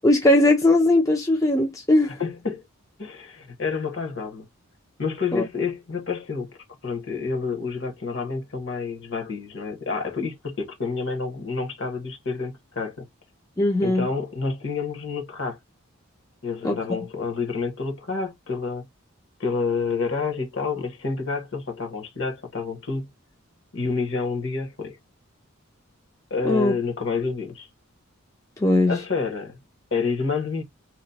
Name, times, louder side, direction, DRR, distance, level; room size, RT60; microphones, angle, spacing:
voice 1, 0.0-2.2 5.3-5.4 13.6-14.1 16.6-16.8 26.4-26.7 28.6-29.0, left 1 dB, 15° left, 0.5 m, -19 dB
voice 2, 2.2-2.6 3.0-4.5 5.0-6.6 6.8-13.0 13.8-15.6 16.4-18.8 19.4-23.1 23.7-25.0 26.3-27.7 28.9-29.6 29.9-30.6, left 4 dB, 55° left, 1.1 m, -28 dB
2.9 x 2.1 x 3.9 m
head